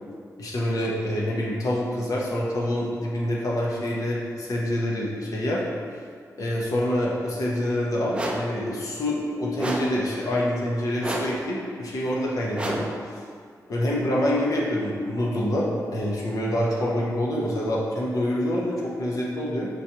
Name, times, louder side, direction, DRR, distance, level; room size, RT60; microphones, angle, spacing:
voice 1, 0.4-5.6 6.4-12.9 13.7-19.7, left 1 dB, 65° left, -4 dB, 0.8 m, -26 dB
sound 1, 8.1-8.6 9.6-10.1 11.0-11.5 12.5-13.0, right 1 dB, 15° right, 0.4 m, -30 dB
4.6 x 4.0 x 2.8 m, 2.1 s
cardioid pair, 95°, 6 cm